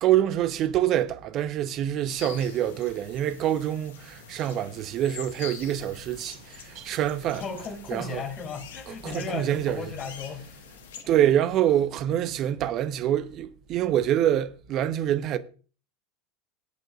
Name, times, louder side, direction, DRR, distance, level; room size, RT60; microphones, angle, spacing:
voice 1, 0.0-7.4 7.9-8.2 8.9-9.9 11.1-15.4, right 11 dB, 40° right, 0.8 m, -26 dB
sound 1, 2.1-11.0, left 7 dB, 65° left, 1.5 m, -45 dB
voice 2, 7.3-10.5 10.9-11.1, left 5 dB, 35° left, 3.0 m, -36 dB
17.0 x 9.1 x 2.5 m
figure-of-eight pair, 80°, 0 cm